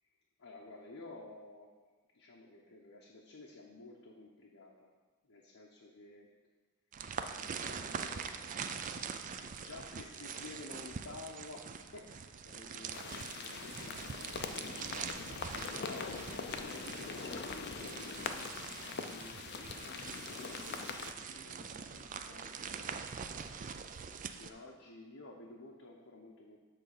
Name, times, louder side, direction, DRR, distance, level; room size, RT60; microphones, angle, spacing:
voice 1, 0.4-1.7 2.1-4.9 5.2-6.3 7.5-8.2 9.3-16.1 16.6-22.9 24.4-26.6, left 2 dB, 75° left, -2 dB, 0.8 m, -53 dB
sound 1, 6.9-24.5, right 6 dB, 35° right, 0.4 m, -44 dB
sound 2, 12.9-21.1, left 5 dB, 50° left, 0.5 m, -42 dB
7.5 x 3.9 x 6.5 m, 1.3 s
head